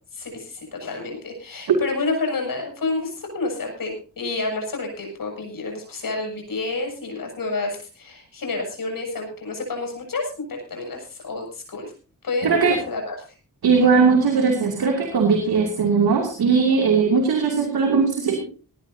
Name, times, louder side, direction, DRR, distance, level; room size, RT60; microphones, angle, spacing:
voice 1, 0.1-11.9 12.2-13.2, left 3 dB, 65° left, 2 dB, 7.0 m, -29 dB
voice 2, 12.4-12.8 13.6-18.5, right 5 dB, 80° right, 2 dB, 2.7 m, -19 dB
18.5 x 17.0 x 2.8 m, 0.37 s
supercardioid pair, 45°, 36 cm